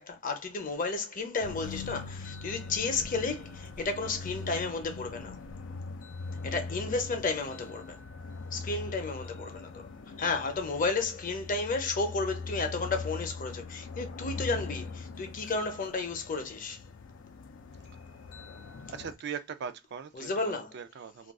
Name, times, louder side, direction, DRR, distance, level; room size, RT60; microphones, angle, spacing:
voice 1, 0.0-5.4 6.4-8.0 8.5-9.9 10.2-16.8 20.1-20.7, left 3 dB, 45° left, 0.7 m, -32 dB
sound 1, 1.4-19.1, left 4 dB, 80° left, 0.4 m, -42 dB
voice 2, 18.8-21.3, right 7 dB, 60° right, 0.4 m, -40 dB
2.4 x 2.3 x 3.5 m
head